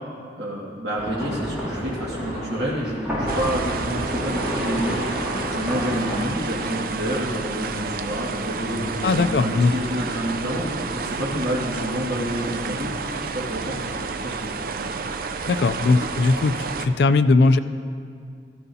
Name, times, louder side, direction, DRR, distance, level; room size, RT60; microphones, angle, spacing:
voice 1, 0.4-5.0 5.5-12.9 13.2-14.5, equal, 80° right, -7 dB, 1.8 m, -28 dB
sound 1, 1.0-6.2, equal, 10° right, 2.7 m, -30 dB
sound 2, 3.3-16.9, right 4 dB, 55° right, 0.4 m, -30 dB
voice 2, 9.0-9.7 15.5-17.6, left 3 dB, 70° left, 11 dB, 0.4 m, -19 dB
14.0 x 13.5 x 2.8 m, 2.3 s
head